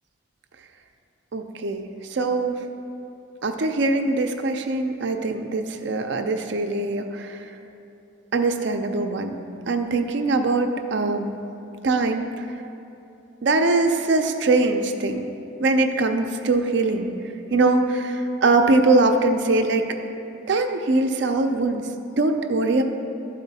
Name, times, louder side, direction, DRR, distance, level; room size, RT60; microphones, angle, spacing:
voice 1, 1.3-1.8 2.1-2.6 3.4-7.5 8.3-9.4 9.7-11.4 11.8-12.5 13.4-15.2 15.6-17.2 17.5-19.9 20.5-21.9 22.1-22.8, right 3 dB, 60° right, 5 dB, 0.5 m, -22 dB
11.5 x 4.3 x 4.1 m, 2.9 s
head